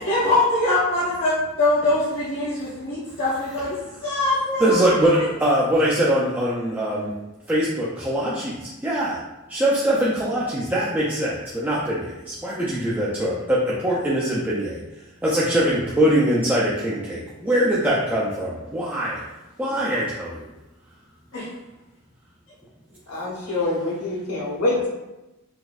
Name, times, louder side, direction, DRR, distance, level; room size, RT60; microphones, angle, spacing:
voice 1, 0.0-5.3 21.3-21.5 23.4-23.5, left 2 dB, 60° left, -11 dB, 1.0 m, -23 dB
voice 2, 4.6-7.1 7.5-9.2 9.5-14.8 15.2-19.2 19.6-20.4, right 1 dB, 10° right, -7 dB, 0.4 m, -22 dB
voice 3, 23.1-24.9, left 2 dB, 85° left, -3 dB, 0.9 m, -25 dB
3.9 x 2.5 x 2.3 m, 1.0 s
head